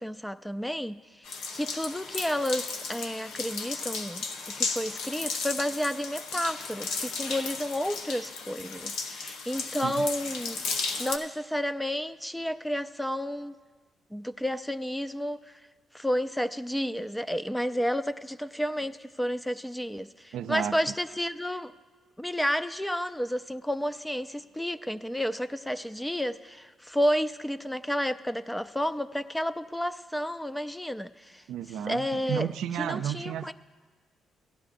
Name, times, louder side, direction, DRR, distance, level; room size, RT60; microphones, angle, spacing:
voice 1, 0.0-4.3 4.6-10.6 11.0-13.5 14.1-15.5 15.9-21.7 22.2-31.4 31.8-32.5 32.8-33.5, equal, 5° left, 13 dB, 0.3 m, -31 dB
sound 1, 1.2-11.2, left 4 dB, 90° left, 0.7 m, -35 dB
voice 2, 20.3-20.7 31.5-33.5, right 10 dB, 80° right, 9 dB, 0.3 m, -32 dB
17.0 x 11.0 x 2.6 m, 1.4 s
cardioid pair, 90°, 0 cm